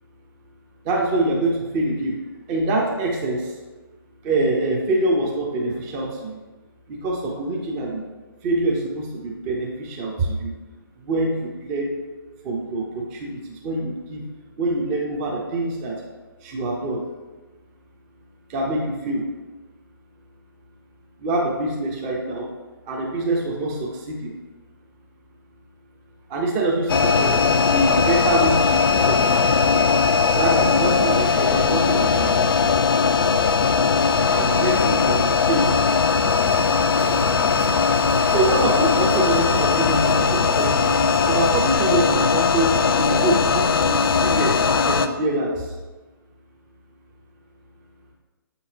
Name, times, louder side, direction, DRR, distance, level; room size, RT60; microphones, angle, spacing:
voice 1, 0.9-2.1 2.5-3.4 4.2-6.4 6.9-8.0 8.4-10.5 11.1-12.0 12.4-13.4 13.6-14.2 14.6-15.9 16.4-17.0 18.5-19.2 21.2-22.5 22.9-23.8 24.1-24.3 26.3-27.4 27.7-29.5 30.3-32.4 34.3-35.7 38.3-40.9 41.3-45.5, right 2 dB, 20° right, -2 dB, 0.9 m, -24 dB
sound 1, 26.9-45.1, left 5 dB, 70° left, 0.5 m, -19 dB
sound 2, 36.4-41.6, equal, 80° right, 1.2 m, -34 dB
7.6 x 5.5 x 2.9 m, 1.2 s
figure-of-eight pair, 145°, 12 cm